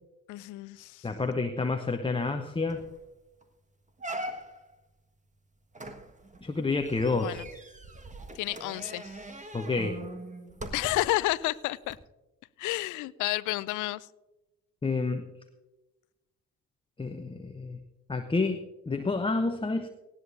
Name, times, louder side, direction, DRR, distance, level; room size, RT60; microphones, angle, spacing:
voice 1, 0.3-1.1 7.1-7.5 8.3-9.2 10.7-12.0 12.6-14.1, left 18 dB, 40° left, 0.5 m, -31 dB
voice 2, 1.0-2.8 6.4-7.4 9.5-10.0 14.8-15.3 17.0-17.8 18.1-19.9, left 3 dB, 10° left, 0.8 m, -29 dB
sound 1, 2.2-2.3 2.7-3.0 3.4-3.5 4.0-4.7 5.7-11.2 11.8-11.9, right 1 dB, 15° right, 1.5 m, -41 dB
18.5 x 16.0 x 2.6 m
figure-of-eight pair, 50°, 47 cm